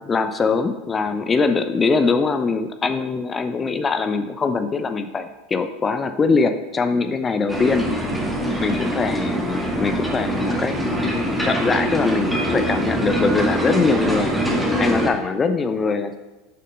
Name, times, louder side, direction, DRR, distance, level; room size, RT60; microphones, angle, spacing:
voice 1, 0.0-7.9 8.6-14.3 14.8-16.2, left 4 dB, 25° left, 8 dB, 0.6 m, -22 dB
sound 1, 7.5-15.1, right 1 dB, ahead, 2.1 m, -23 dB
6.8 x 6.5 x 5.3 m, 1.1 s
figure-of-eight pair, 75°, 0 cm